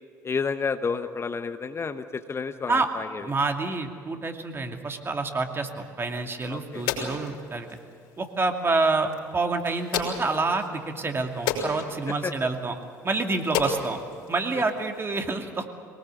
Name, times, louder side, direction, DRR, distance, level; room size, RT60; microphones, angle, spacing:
voice 1, 0.2-3.3 6.5-6.8 12.2-12.3, left 5 dB, 30° left, 9 dB, 1.0 m, -30 dB
voice 2, 3.2-7.7 8.2-12.7 13.0-14.0 14.3-15.7, right 3 dB, 25° right, 4 dB, 2.5 m, -27 dB
sound 1, 6.0-15.0, left 6 dB, 65° left, 5.1 m, -35 dB
23.0 x 20.0 x 8.3 m, 2.3 s
hypercardioid pair, 60°, 9 cm